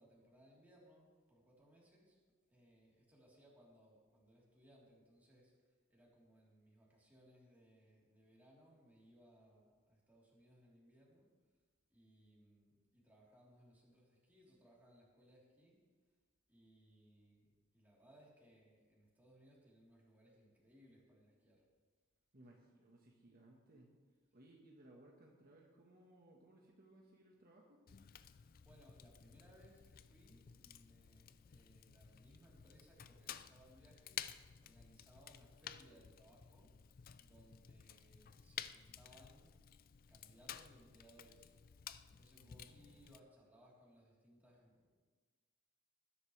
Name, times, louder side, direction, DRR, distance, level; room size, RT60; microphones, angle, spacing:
voice 1, 0.0-2.2 2.5-11.3 11.9-15.8 16.5-21.6 28.3-36.7 37.2-39.5 40.1-41.5 42.1-44.9, equal, 10° right, -5 dB, 3.6 m, -66 dB
voice 2, 22.3-23.9 24.3-27.9 42.4-43.0, right 1 dB, 50° right, -1 dB, 1.4 m, -63 dB
Fire, 27.9-43.2, left 9 dB, 45° left, 0.4 m, -53 dB
20.0 x 10.5 x 3.3 m, 1.4 s
head